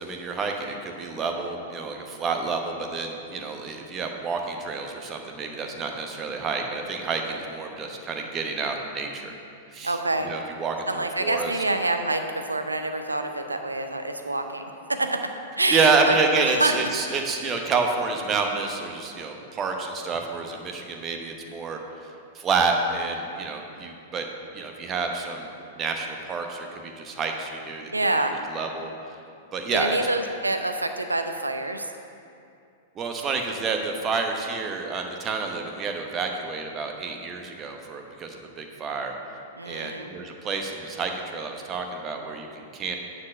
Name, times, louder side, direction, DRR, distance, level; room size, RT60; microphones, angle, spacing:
voice 1, 0.0-9.3 9.7-10.0 10.3-11.5 15.7-22.1 22.3-24.3 24.5-27.9 28.5-28.9 29.5-30.0 32.9-39.1 39.7-43.0, right 4 dB, 25° right, 3 dB, 1.0 m, -28 dB
voice 2, 9.8-10.3 10.9-15.3 15.6-16.2 16.5-16.7 27.9-28.3 29.7-31.9 39.6-40.1, right 2 dB, 85° right, 6 dB, 0.6 m, -26 dB
9.6 x 4.3 x 6.4 m, 2.5 s
figure-of-eight pair, 100°, 0 cm